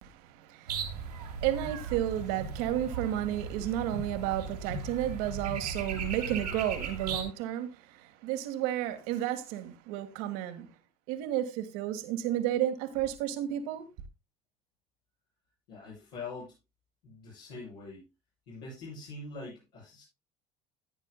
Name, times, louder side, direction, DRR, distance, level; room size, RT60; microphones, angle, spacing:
voice 1, 0.0-10.7 11.1-13.9, right 12 dB, 70° right, 1.7 m, -32 dB
sound 1, 0.7-7.2, right 5 dB, 90° right, 2.6 m, -37 dB
voice 2, 15.7-16.6 17.0-18.1 18.5-20.0, left 3 dB, 75° left, 7.5 m, -44 dB
16.5 x 9.1 x 2.2 m
hypercardioid pair, 65°, 20 cm